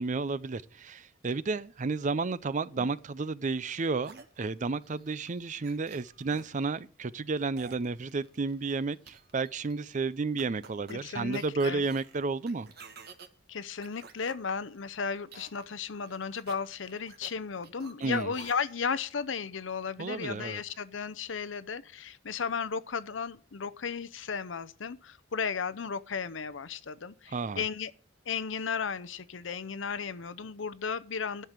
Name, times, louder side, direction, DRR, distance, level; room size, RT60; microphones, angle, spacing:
voice 1, 0.0-12.7 18.0-18.3 20.0-20.6 27.3-27.6, right 4 dB, 40° right, 0.5 m, -32 dB
sound 1, 4.0-6.5 7.6-8.7 9.1-9.8 10.4-13.3 13.8-14.3 15.3-15.8 16.1-17.3 17.6-18.8, right 5 dB, 55° right, 1.4 m, -51 dB
voice 2, 10.9-11.9 13.5-27.9 28.3-31.4, left 6 dB, 80° left, 0.7 m, -35 dB
11.0 x 6.8 x 7.3 m
head